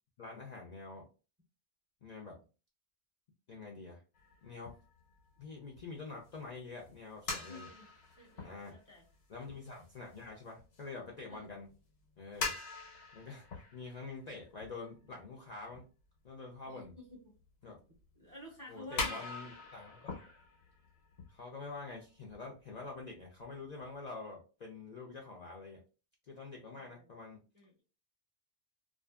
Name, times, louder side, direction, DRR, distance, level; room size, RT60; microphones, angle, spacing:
voice 1, 0.2-1.1 2.0-2.4 3.5-4.0 4.4-4.7 5.4-7.7 8.4-8.7 9.3-11.7 12.2-12.5 13.1-13.5 13.7-15.8 16.2-16.9 17.6-17.8 18.7-20.1 21.3-25.8 26.3-27.4, left 3 dB, 55° left, -1 dB, 0.5 m, -46 dB
sound 1, 4.1-11.8 12.0-15.2 15.7-15.8 16.7-17.1 17.4-17.5 17.9-18.0 18.5-18.6 18.9-22.0 22.3-22.4 22.8-22.9 23.1-24.0, left 3 dB, 85° left, 1.2 m, -44 dB
voice 2, 7.5-7.9 8.2-9.0 11.3-11.5 16.7-17.3 18.2-19.3 26.7-27.1 27.5-27.8, left 1 dB, 25° right, -2 dB, 0.5 m, -52 dB
2.5 x 2.4 x 2.3 m, 0.34 s
omnidirectional pair, 1.2 m